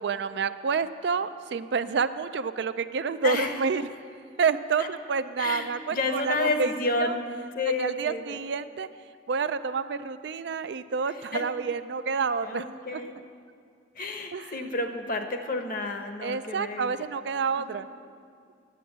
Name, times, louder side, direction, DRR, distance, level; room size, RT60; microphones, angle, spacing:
voice 1, 0.0-3.8 4.4-6.7 7.0-7.1 7.8-8.9 9.3-12.6 12.9-13.0 14.3-14.5 16.2-17.9, right 5 dB, 60° right, 12 dB, 0.4 m, -28 dB
voice 2, 3.2-3.6 4.8-4.9 5.4-7.3 7.5-8.4 11.1-11.4 12.4-13.2 13.9-17.1 17.5-17.8, left 2 dB, 50° left, 5 dB, 0.9 m, -31 dB
10.0 x 7.6 x 7.9 m, 2.2 s
head